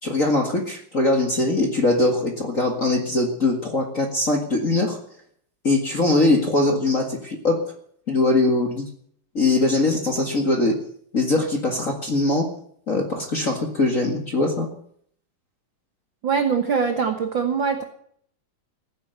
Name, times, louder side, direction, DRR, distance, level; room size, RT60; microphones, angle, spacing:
voice 1, 0.0-5.0 5.6-7.6 8.1-8.9 9.3-10.8 11.1-12.5 12.9-14.7, left 2 dB, 30° left, 3 dB, 1.6 m, -21 dB
voice 2, 16.2-17.8, right 6 dB, 65° right, 7 dB, 1.2 m, -22 dB
16.5 x 10.0 x 8.1 m, 0.63 s
omnidirectional pair, 4.0 m